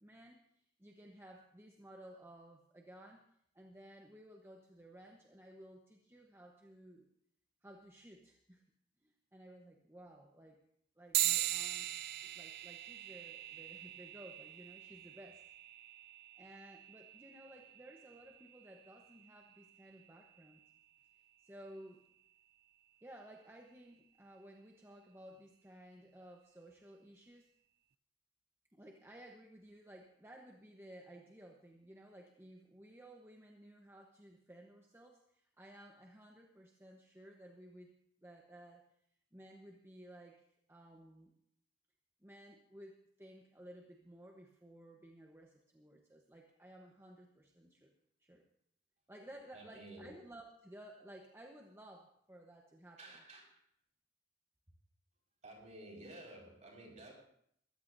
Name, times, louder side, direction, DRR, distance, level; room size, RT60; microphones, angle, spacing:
voice 1, 0.0-3.2 3.5-7.1 7.6-8.6 9.0-10.6 11.0-11.9 12.2-15.4 16.3-20.6 21.4-22.0 23.0-27.5 28.7-37.9 38.2-38.8 39.3-41.3 42.2-47.9 48.2-48.4 49.1-53.0, right 1 dB, 15° right, 1 dB, 1.0 m, -56 dB
sound 1, 11.1-21.0, right 14 dB, 55° right, 0.4 m, -41 dB
voice 2, 49.5-50.1 53.0-53.7 55.4-57.1, right 1 dB, 40° right, -2 dB, 4.9 m, -53 dB
22.0 x 14.5 x 2.7 m, 0.69 s
head